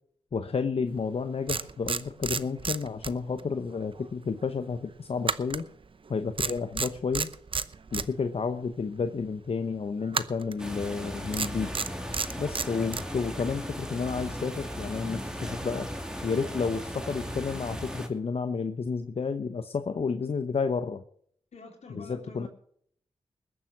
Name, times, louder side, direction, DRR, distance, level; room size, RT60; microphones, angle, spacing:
voice 1, 0.3-5.7 6.1-7.3 7.9-11.7 12.4-15.9 16.2-21.0 21.9-22.5, left 5 dB, 60° left, 9 dB, 0.9 m, -31 dB
sound 1, 1.0-1.1 1.5-3.5 3.8-4.0 5.2-6.1 6.4-8.1 10.1-10.6 11.3-13.1, right 5 dB, 50° right, 0.8 m, -31 dB
sound 2, 10.6-18.1, equal, 5° right, 2.4 m, -37 dB
voice 2, 21.5-22.5, left 2 dB, 80° left, 3 dB, 3.2 m, -46 dB
20.5 x 7.3 x 6.1 m, 0.63 s
cardioid pair, 60°, 11 cm